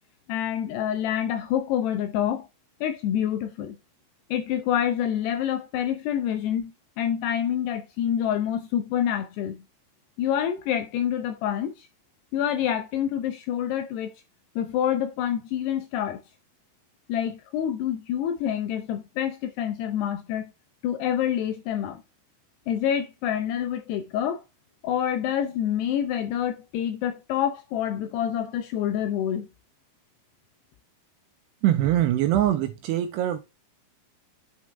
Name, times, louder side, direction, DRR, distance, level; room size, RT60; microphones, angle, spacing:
voice 1, 0.3-2.5 2.8-3.8 4.3-9.6 10.2-11.9 12.3-14.1 14.6-16.2 17.1-20.5 20.8-22.0 22.7-24.4 24.8-29.5, left 10 dB, 80° left, 2.5 m, -27 dB
voice 2, 31.6-33.4, right 12 dB, 85° right, 2.5 m, -23 dB
8.4 x 4.9 x 3.3 m
omnidirectional pair, 5.5 m